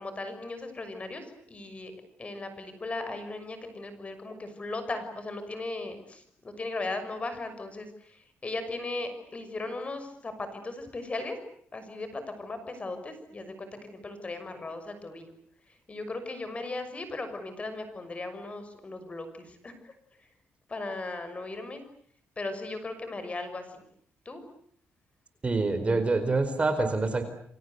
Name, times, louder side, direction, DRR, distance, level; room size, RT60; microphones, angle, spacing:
voice 1, 0.0-1.9 2.2-11.4 11.7-15.3 15.9-19.9 20.7-21.8 22.4-23.8 24.2-24.4, left 2 dB, 30° left, 9 dB, 6.2 m, -37 dB
voice 2, 25.4-27.2, right 3 dB, 25° right, 10 dB, 4.6 m, -26 dB
29.5 x 24.0 x 8.2 m, 0.65 s
cardioid pair, 110°, 4 cm